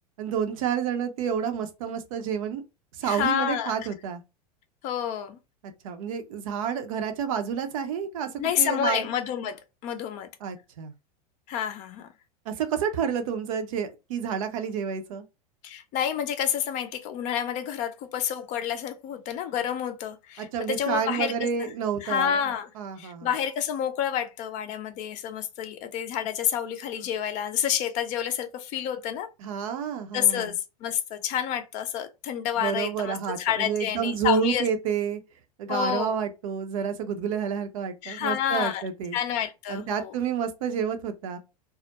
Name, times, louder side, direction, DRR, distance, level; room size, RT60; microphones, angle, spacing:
voice 1, 0.2-2.6 2.9-4.2 5.8-8.3 8.6-9.1 10.4-10.9 12.5-15.2 20.4-22.4 22.8-23.3 29.4-30.5 32.6-35.2 35.6-39.2 39.7-41.4, right 7 dB, 55° right, 0.5 m, -29 dB
voice 2, 3.0-3.8 4.8-5.4 8.4-10.3 11.5-12.1 15.6-21.7 22.0-22.7 23.0-29.3 30.1-34.6 35.7-36.2 38.0-38.8 39.1-40.1, left 9 dB, 35° left, 0.4 m, -29 dB
2.3 x 2.0 x 2.7 m
figure-of-eight pair, 90°, 20 cm